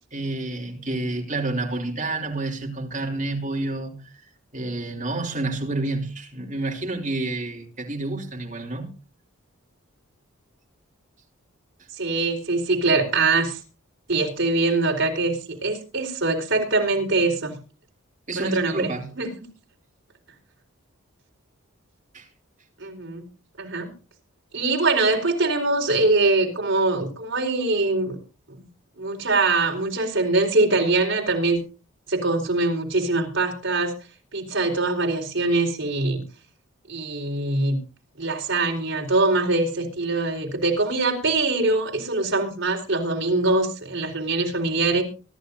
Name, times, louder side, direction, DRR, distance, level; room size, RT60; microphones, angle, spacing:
voice 1, 0.1-8.9 18.3-19.1 22.1-22.3, right 2 dB, 35° right, 3.1 m, -29 dB
voice 2, 11.9-13.6 14.1-17.5 18.4-18.9 19.1-19.3 22.8-23.2 23.6-23.9 24.5-28.2 28.5-28.7 29.0-31.6 32.1-33.9 34.3-36.2 36.9-37.8 38.2-45.0, right 3 dB, 60° right, 4.3 m, -23 dB
24.5 x 11.5 x 2.7 m
head